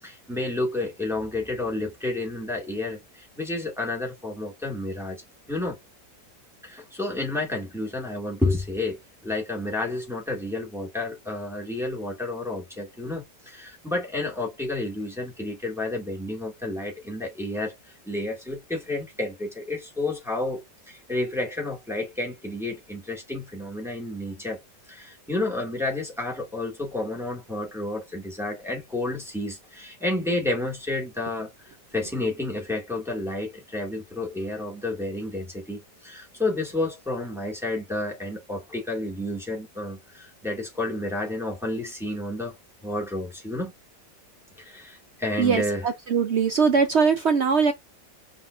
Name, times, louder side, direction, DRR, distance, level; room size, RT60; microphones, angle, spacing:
voice 1, 0.0-5.2 5.5-5.8 6.6-24.6 24.9-42.6 42.8-43.7 44.6-45.9, left 2 dB, ahead, 1.9 m, -30 dB
voice 2, 46.1-47.7, right 5 dB, 65° right, 0.6 m, -20 dB
5.6 x 3.5 x 2.5 m
omnidirectional pair, 2.0 m